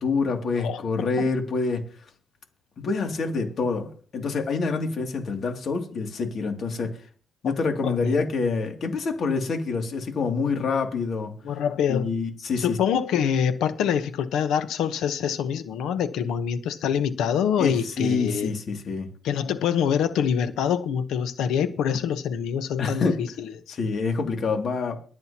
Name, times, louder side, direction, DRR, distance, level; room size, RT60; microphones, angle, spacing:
voice 1, 0.0-1.9 2.8-7.0 7.4-11.3 11.9-12.8 17.6-19.1 22.8-23.2 23.7-25.0, left 4 dB, 55° left, 2.6 m, -26 dB
voice 2, 7.8-8.2 11.4-12.1 12.6-18.5 19.2-23.8, left 8 dB, 85° left, 1.0 m, -25 dB
23.0 x 7.8 x 2.9 m
cardioid pair, 90°, 0 cm